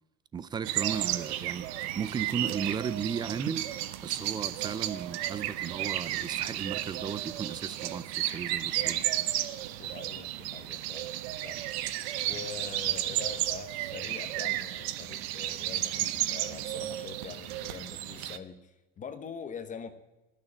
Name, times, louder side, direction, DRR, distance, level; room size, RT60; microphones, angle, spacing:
voice 1, 0.3-3.7 4.0-9.0, right 6 dB, 15° right, 17 dB, 0.3 m, -35 dB
sound 1, 0.6-18.4, right 14 dB, 85° right, 0.8 m, -33 dB
voice 2, 9.8-11.1 11.4-11.6 12.2-19.9, left 6 dB, 25° left, 9 dB, 0.9 m, -44 dB
12.5 x 6.7 x 9.6 m, 1.1 s
supercardioid pair, 135°, 31 cm